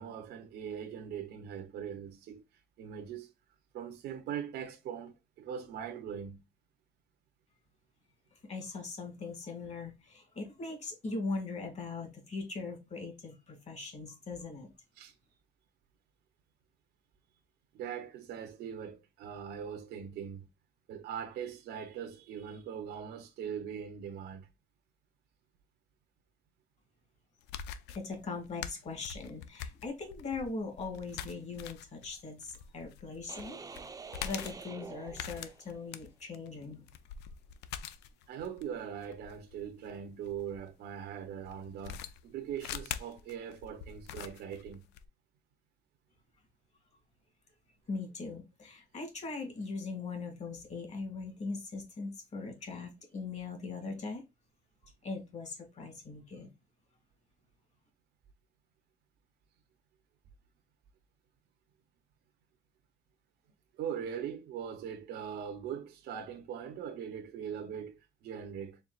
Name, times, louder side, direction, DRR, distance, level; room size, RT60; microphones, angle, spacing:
voice 1, 0.0-2.4 2.8-3.3 3.7-6.4 15.0-15.1 17.7-20.4 20.9-24.5 38.3-44.8 63.7-68.8, right 8 dB, 75° right, 0.8 m, -41 dB
voice 2, 8.5-14.7 27.9-33.7 34.2-36.8 47.9-54.2 55.0-56.5, left 3 dB, 40° left, 2.1 m, -40 dB
sound 1, 27.4-40.6 41.4-45.1, left 9 dB, 85° left, 0.5 m, -44 dB
sound 2, 33.3-35.9, right 5 dB, 20° right, 0.6 m, -47 dB
4.5 x 3.6 x 2.4 m
cardioid pair, 110°, 17 cm